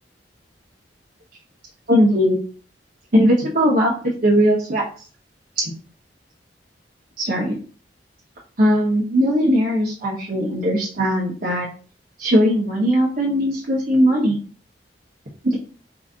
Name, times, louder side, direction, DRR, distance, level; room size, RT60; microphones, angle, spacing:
voice 1, 1.9-2.4 3.1-3.9 4.2-4.8 5.6-5.7 7.2-7.6 8.6-11.7 12.2-14.4 15.4-15.6, equal, 55° right, -4 dB, 1.0 m, -19 dB
4.8 x 2.6 x 3.8 m, 0.39 s
head